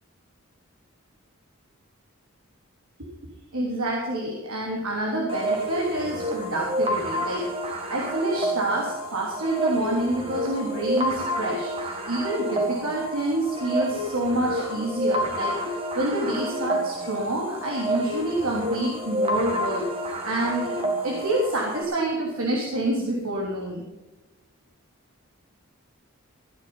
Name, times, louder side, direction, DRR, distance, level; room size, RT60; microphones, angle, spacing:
voice 1, 3.5-19.9 20.2-23.8, right 1 dB, 90° right, -3 dB, 3.2 m, -27 dB
sound 1, 5.3-21.8, equal, 25° right, 2.0 m, -29 dB
16.5 x 10.5 x 5.6 m, 1.1 s
head